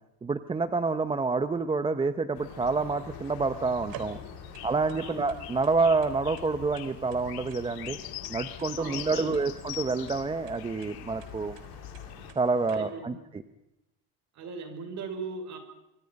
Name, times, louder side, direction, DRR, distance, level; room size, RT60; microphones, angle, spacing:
voice 1, 0.2-4.2 4.6-8.0 8.3-11.6 12.4-13.4, right 4 dB, 15° right, 11 dB, 0.9 m, -28 dB
sound 1, 2.3-12.3, left 13 dB, 85° left, 2.3 m, -42 dB
sound 2, 2.5-12.8, right 7 dB, 70° right, 4.0 m, -50 dB
voice 2, 8.7-9.5 12.7-13.2 14.3-15.6, right 4 dB, 50° right, 7 dB, 5.8 m, -39 dB
26.0 x 25.0 x 5.4 m, 0.90 s
cardioid pair, 155°, 36 cm